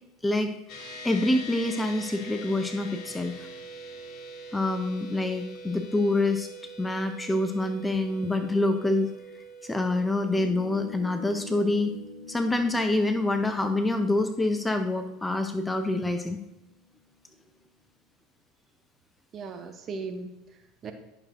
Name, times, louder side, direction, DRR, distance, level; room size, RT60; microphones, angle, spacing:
voice 1, 0.2-0.6 1.0-3.3 4.5-6.5 6.8-9.1 9.6-12.0 12.3-16.4, left 2 dB, 10° left, 7 dB, 0.6 m, -26 dB
sound 1, 0.7-14.3, right 1 dB, 50° left, 1.5 m, -45 dB
sound 2, 10.3-17.3, left 5 dB, 85° left, 1.0 m, -46 dB
voice 2, 19.3-20.9, right 4 dB, 40° right, 7 dB, 0.8 m, -38 dB
11.5 x 6.4 x 2.6 m, 0.97 s
hypercardioid pair, 70°, 0 cm